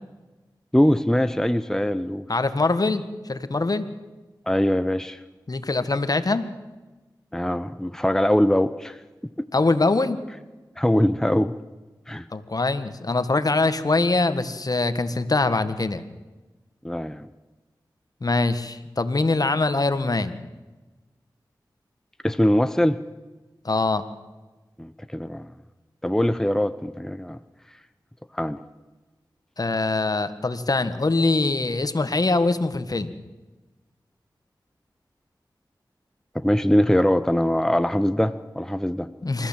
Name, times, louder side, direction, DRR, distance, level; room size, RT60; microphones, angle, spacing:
voice 1, 0.7-2.3 4.5-5.2 7.3-9.0 9.4-9.5 10.8-11.5 12.1-12.2 16.8-17.3 22.2-23.0 24.8-25.5 26.0-27.4 28.3-28.6 36.3-39.1, equal, 5° left, 11 dB, 0.9 m, -22 dB
voice 2, 2.3-3.9 5.5-6.4 9.5-10.2 12.3-16.0 18.2-20.3 23.6-24.1 29.6-33.1 39.2-39.5, left 3 dB, 50° left, 11 dB, 1.7 m, -23 dB
27.5 x 14.5 x 7.5 m, 1.2 s
cardioid pair, 40°, 8 cm